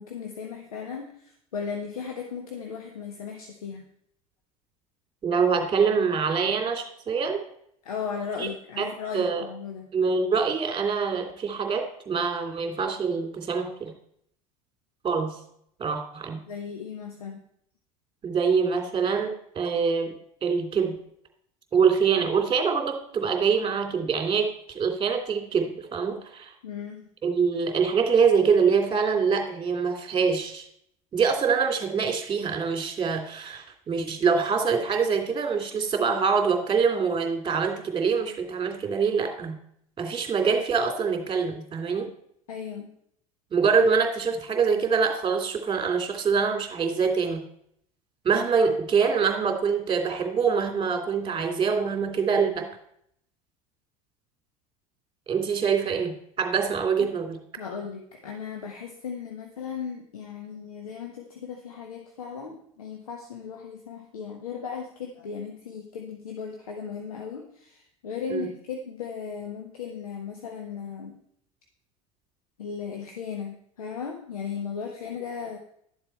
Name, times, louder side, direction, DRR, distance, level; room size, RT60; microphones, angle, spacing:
voice 1, 0.0-3.9 7.8-9.9 16.5-17.4 26.6-27.0 42.5-42.9 57.6-71.2 72.6-75.6, left 6 dB, 85° left, 3 dB, 1.3 m, -36 dB
voice 2, 5.2-7.4 8.4-8.5 8.8-8.9 9.1-9.5 9.9-13.9 15.0-15.4 15.8-16.4 18.2-20.1 20.4-21.0 21.7-26.5 27.2-30.7 31.1-39.6 40.0-42.1 43.5-47.4 48.2-52.7 55.3-57.4 68.3-68.5, right 5 dB, 25° right, 3 dB, 2.9 m, -25 dB
12.0 x 7.3 x 4.5 m, 0.70 s
hypercardioid pair, 80°, 18 cm